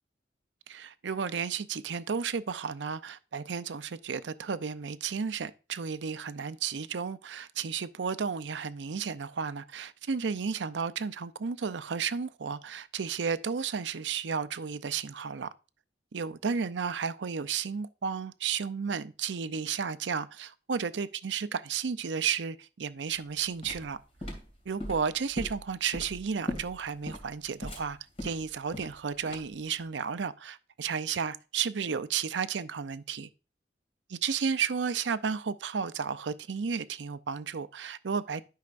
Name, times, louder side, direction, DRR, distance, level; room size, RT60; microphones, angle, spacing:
voice 1, 0.7-15.5 16.1-24.0 24.7-33.3 34.2-38.4, right 6 dB, 75° right, 0.5 m, -33 dB
sound 1, 23.2-29.7, left 1 dB, 35° left, 2.5 m, -39 dB
11.5 x 5.7 x 2.5 m
head